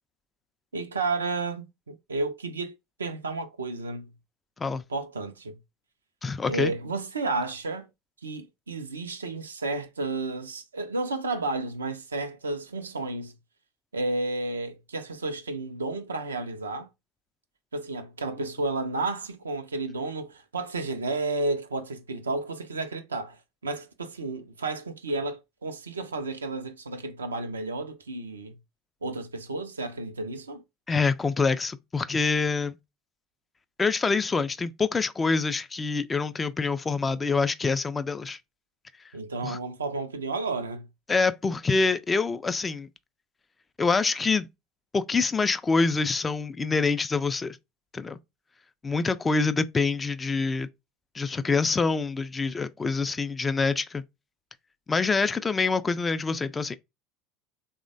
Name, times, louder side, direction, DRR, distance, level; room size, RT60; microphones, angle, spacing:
voice 1, 0.7-2.7 3.0-4.1 4.7-5.6 6.4-7.9 8.2-13.3 13.9-16.9 17.7-28.6 29.0-30.6 39.1-40.9, right 3 dB, 85° right, 0.4 m, -32 dB
voice 2, 6.2-6.7 30.9-32.8 33.8-38.4 39.4-39.6 41.1-42.9 43.8-44.5 44.9-47.6 47.9-48.2 48.8-50.7 51.1-54.0 54.9-56.7, left 4 dB, 20° left, 0.3 m, -26 dB
3.1 x 2.1 x 2.5 m
hypercardioid pair, 70°, 0 cm